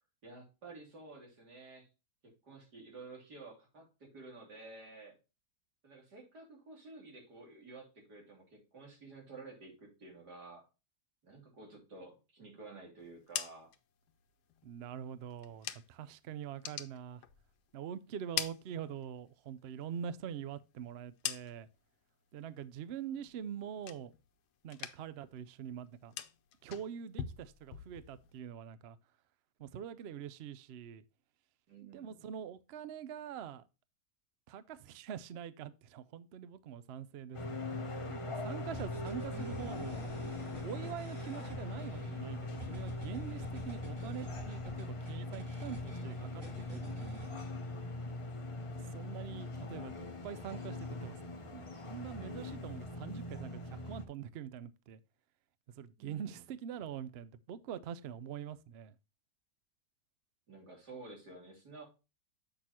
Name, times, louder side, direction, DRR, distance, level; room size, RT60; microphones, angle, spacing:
voice 1, 0.2-1.9 2.2-5.2 5.8-10.6 11.2-13.7 31.7-32.2 56.0-56.4 60.5-61.8, right 3 dB, 85° right, 3.5 m, -52 dB
sound 1, 13.0-16.1 16.5-17.8 18.1-19.4 19.7-21.9 22.3-22.7 23.1-24.4 24.6-25.3 25.5-28.4, left 10 dB, 90° left, 1.3 m, -44 dB
voice 2, 14.6-17.2 17.7-21.7 22.3-24.1 24.6-26.2 26.6-29.0 29.6-31.0 31.9-33.6 34.5-37.6 38.1-40.0 40.6-47.4 48.9-49.9 50.2-51.2 51.5-55.0 55.8-58.9, right 8 dB, 70° right, 0.6 m, -44 dB
sound 2, 37.3-54.1, left 2 dB, 35° left, 0.5 m, -41 dB
sound 3, 38.7-47.5, equal, 55° right, 3.3 m, -49 dB
7.8 x 6.3 x 2.9 m
omnidirectional pair, 1.7 m